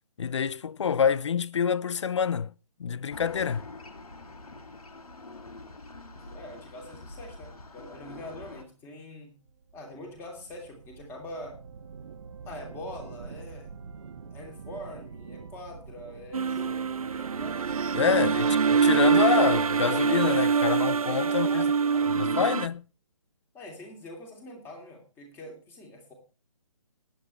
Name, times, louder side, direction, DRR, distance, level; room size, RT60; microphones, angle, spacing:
voice 1, 0.2-2.5 2.8-3.6 17.9-21.7 22.1-22.8, left 7 dB, 50° left, 0.5 m, -27 dB
sound 1, 3.1-8.6, left 2 dB, 75° left, 2.1 m, -45 dB
voice 2, 6.1-9.4 9.7-11.6 12.4-13.7 14.3-17.6 18.2-18.5 21.3-22.5 23.5-26.1, left 1 dB, 10° left, 2.7 m, -44 dB
sound 2, 9.5-21.5, right 5 dB, 50° right, 1.4 m, -46 dB
sound 3, 16.3-22.7, right 6 dB, 70° right, 0.6 m, -24 dB
19.5 x 8.9 x 3.2 m
figure-of-eight pair, 150°, 19 cm